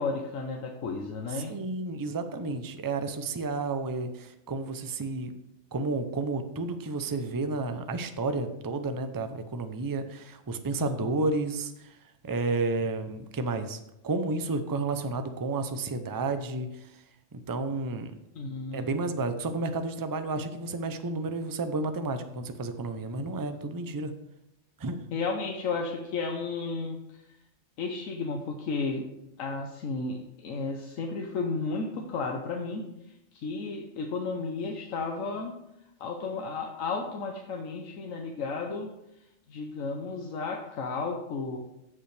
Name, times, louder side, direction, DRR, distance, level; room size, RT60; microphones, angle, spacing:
voice 1, 0.0-1.5 10.8-11.1 18.3-18.9 25.1-27.0 27.8-29.1 29.4-32.8 33.3-35.5 36.0-38.9 39.5-41.6, left 4 dB, 85° left, 2 dB, 1.3 m, -33 dB
voice 2, 1.4-5.3 5.7-12.0 12.2-13.8 14.0-17.0 17.5-18.2 18.7-24.1 24.8-25.0, right 3 dB, 30° right, 8 dB, 0.4 m, -31 dB
15.5 x 5.4 x 3.3 m, 0.85 s
omnidirectional pair, 1.3 m